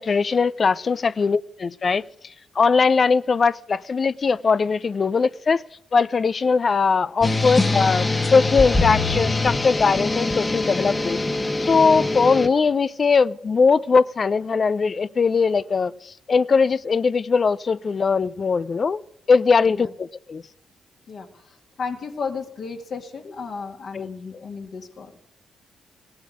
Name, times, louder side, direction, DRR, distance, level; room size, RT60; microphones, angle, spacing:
voice 1, 0.0-2.0 2.6-5.6 5.9-11.2 11.6-15.9 16.3-19.0 19.3-20.4 23.9-24.1, left 5 dB, 45° left, 0.5 m, -20 dB
sound 1, 7.2-12.5, left 2 dB, 25° left, 1.4 m, -23 dB
voice 2, 21.8-25.1, left 5 dB, 65° left, 2.1 m, -33 dB
17.0 x 8.7 x 9.4 m
hypercardioid pair, 50°, 0 cm